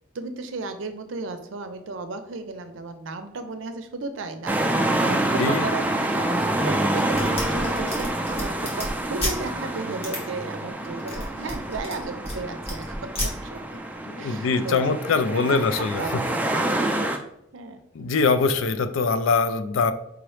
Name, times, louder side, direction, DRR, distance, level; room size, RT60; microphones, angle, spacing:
voice 1, 0.1-13.1 13.4-14.9 15.3-17.2 17.5-17.8, right 3 dB, 75° right, 8 dB, 0.5 m, -35 dB
sound 1, 4.5-17.2, right 1 dB, 10° right, 0.3 m, -27 dB
voice 2, 5.3-5.6 14.1-16.0 17.9-19.9, left 4 dB, 80° left, 10 dB, 0.4 m, -23 dB
sound 2, 7.1-9.4 10.0-10.2 10.9-12.4 12.6-13.3, equal, 30° left, 1.2 m, -31 dB
4.9 x 3.0 x 3.1 m, 0.77 s
head